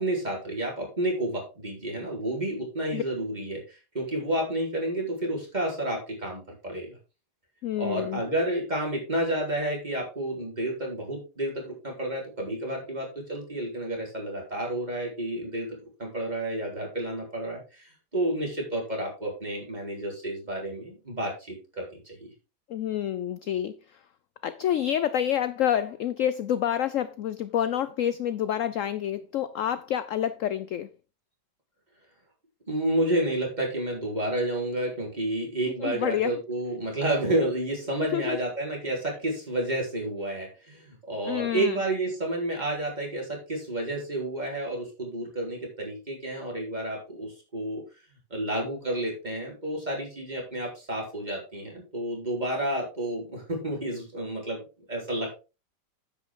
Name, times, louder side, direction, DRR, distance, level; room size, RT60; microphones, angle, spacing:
voice 1, 0.0-7.0 7.8-15.7 16.0-22.3 32.7-47.8 48.3-55.4, right 1 dB, 25° right, 4.5 m, -30 dB
voice 2, 7.6-8.2 22.7-23.8 24.4-30.9 35.6-36.4 38.1-38.4 41.2-41.8, left 10 dB, 65° left, 0.8 m, -28 dB
9.9 x 8.5 x 3.8 m
omnidirectional pair, 1.9 m